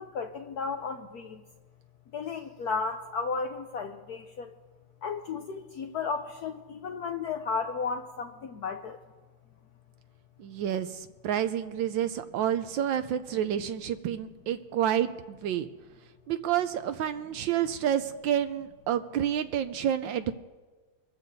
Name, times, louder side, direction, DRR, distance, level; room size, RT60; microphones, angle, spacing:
voice 1, 0.0-1.4 2.1-4.5 5.0-9.0, left 5 dB, 70° left, 5 dB, 0.9 m, -34 dB
voice 2, 10.4-15.7 16.3-20.3, right 10 dB, 75° right, 10 dB, 1.2 m, -29 dB
25.0 x 14.5 x 2.7 m, 1.3 s
omnidirectional pair, 2.3 m